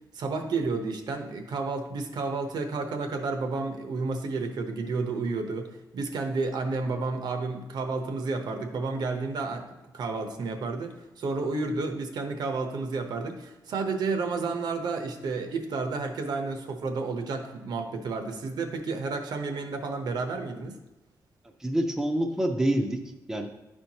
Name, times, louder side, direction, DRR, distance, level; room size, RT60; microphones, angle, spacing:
voice 1, 0.1-20.8, right 3 dB, 75° right, 6 dB, 0.8 m, -31 dB
voice 2, 21.6-23.5, right 1 dB, 5° right, 3 dB, 0.5 m, -27 dB
11.0 x 4.5 x 2.8 m, 0.99 s
wide cardioid pair, 165°, 7 cm